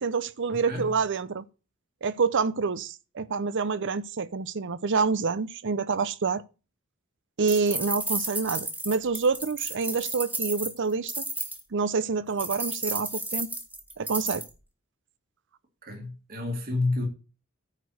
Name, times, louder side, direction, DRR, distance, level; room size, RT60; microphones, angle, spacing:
voice 1, 0.0-1.5 2.0-6.4 7.4-11.3 11.7-13.5 14.0-14.4, right 4 dB, 60° right, 0.7 m, -27 dB
sound 1, 7.5-11.6 12.4-14.5, right 1 dB, 10° right, 1.6 m, -33 dB
voice 2, 15.8-17.1, left 2 dB, 45° right, 2.7 m, -29 dB
9.8 x 4.7 x 7.9 m
head